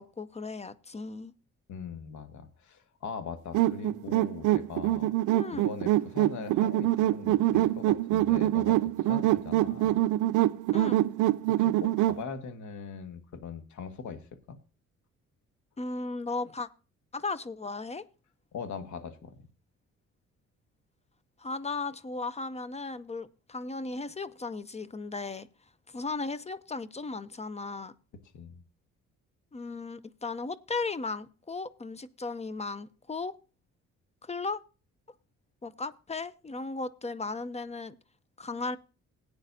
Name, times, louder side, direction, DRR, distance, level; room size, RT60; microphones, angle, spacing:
voice 1, 0.0-1.3 5.3-5.6 10.7-11.0 15.8-16.7 17.1-18.0 21.4-25.5 25.9-27.9 29.5-33.3 34.2-34.6 35.6-37.9 38.4-38.8, left 3 dB, 20° left, 17 dB, 0.6 m, -36 dB
voice 2, 1.7-5.1 5.5-10.0 11.5-14.6 18.5-19.5 28.3-28.6, left 6 dB, 70° left, 9 dB, 1.6 m, -41 dB
sound 1, 3.5-12.2, right 15 dB, 80° right, 0.5 m, -25 dB
17.5 x 9.1 x 2.7 m, 0.35 s
cardioid pair, 90°, 30 cm